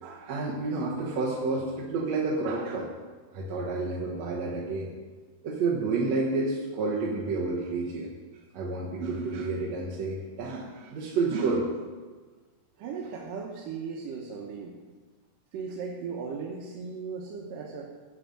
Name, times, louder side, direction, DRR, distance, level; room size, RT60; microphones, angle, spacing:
voice 1, 0.0-2.9 3.3-4.9 5.4-8.1 8.5-11.7, right 3 dB, 60° right, -4 dB, 2.2 m, -30 dB
voice 2, 12.8-14.8 15.5-17.9, right 5 dB, 85° right, -1 dB, 2.7 m, -37 dB
10.5 x 6.9 x 7.6 m, 1.4 s
omnidirectional pair, 3.8 m